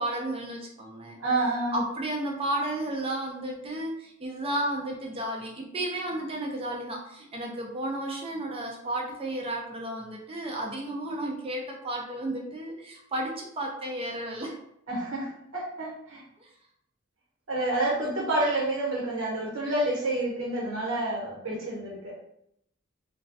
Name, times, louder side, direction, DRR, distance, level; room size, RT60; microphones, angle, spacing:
voice 1, 0.0-1.2 1.7-14.6 16.4-16.5, right 1 dB, 25° right, 0 dB, 0.4 m, -33 dB
voice 2, 1.2-1.8 14.9-16.2 17.5-22.2, right 2 dB, 85° right, -3 dB, 1.1 m, -29 dB
3.0 x 2.3 x 2.6 m, 0.74 s
head